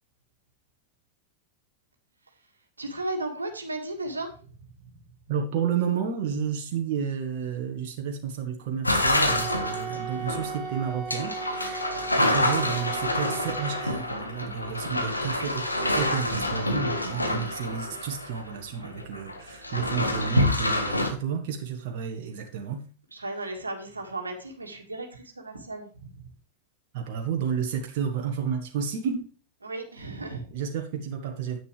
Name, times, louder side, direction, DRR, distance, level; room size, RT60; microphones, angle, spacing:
voice 1, 2.8-4.3 23.1-26.2 29.6-30.5, right 2 dB, 80° right, 3 dB, 2.0 m, -35 dB
voice 2, 5.3-15.7 15.9-22.8 26.9-29.2 30.5-31.6, right 7 dB, 50° right, 3 dB, 1.5 m, -31 dB
sound 1, 8.8-18.6 18.8-21.1, left 1 dB, 85° left, 1.6 m, -27 dB
Wind instrument woodwind instrument, 9.3-14.2, right 6 dB, 25° right, 0.9 m, -37 dB
10.0 x 9.3 x 3.3 m, 0.38 s
figure-of-eight pair, 90°, 0 cm